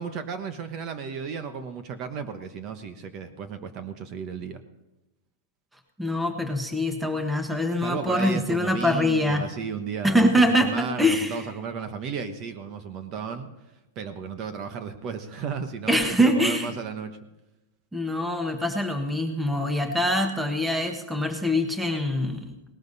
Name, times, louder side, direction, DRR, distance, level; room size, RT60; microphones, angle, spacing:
voice 1, 0.0-4.6 7.8-13.5 13.9-17.2, right 6 dB, 35° right, 9 dB, 1.1 m, -34 dB
voice 2, 6.0-9.4 10.0-11.4 15.9-16.7 17.9-22.5, left 1 dB, 5° right, 5 dB, 1.4 m, -24 dB
18.5 x 13.0 x 4.1 m, 0.99 s
supercardioid pair, 145°, 0 cm